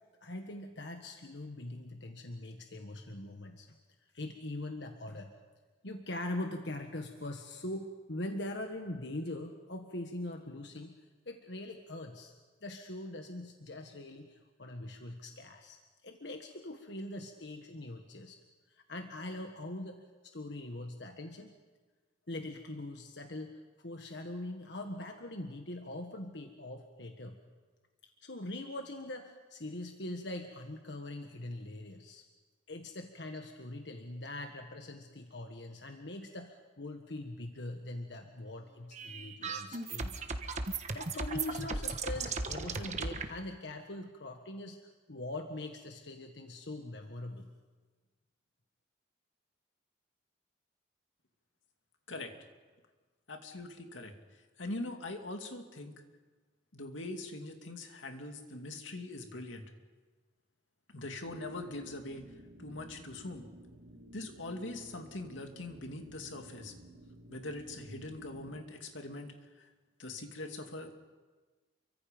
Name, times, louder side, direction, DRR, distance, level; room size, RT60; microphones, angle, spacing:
voice 1, 0.2-3.8 4.1-5.3 5.8-11.0 11.2-12.3 12.6-18.4 18.7-21.5 22.3-27.4 28.2-32.2 32.7-40.1 40.9-47.5, left 1 dB, 65° left, 4 dB, 1.6 m, -42 dB
sound 1, 38.9-43.3, right 4 dB, 40° right, 1.3 m, -36 dB
voice 2, 53.3-54.1 54.6-56.0 56.7-59.6 60.9-62.3 62.6-63.5 64.1-66.7 67.3-69.7 70.0-70.9, left 2 dB, 90° left, 4 dB, 2.5 m, -42 dB
sound 2, 61.2-68.6, equal, 75° right, 1.8 m, -54 dB
29.0 x 24.0 x 5.3 m, 1.3 s
head